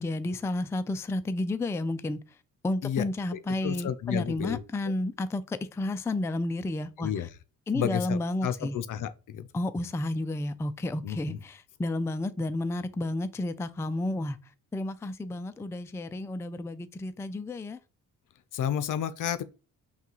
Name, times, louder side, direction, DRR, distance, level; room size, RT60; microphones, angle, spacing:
voice 1, 0.0-2.2 2.6-7.3 7.7-8.8 9.5-14.4 14.7-17.8, left 2 dB, 10° left, 0.3 m, -31 dB
voice 2, 3.3-4.6 7.0-7.3 7.7-9.5 11.0-11.4 18.5-19.4, left 9 dB, 60° left, 0.6 m, -31 dB
5.6 x 2.4 x 3.0 m
cardioid pair, 70°, 35 cm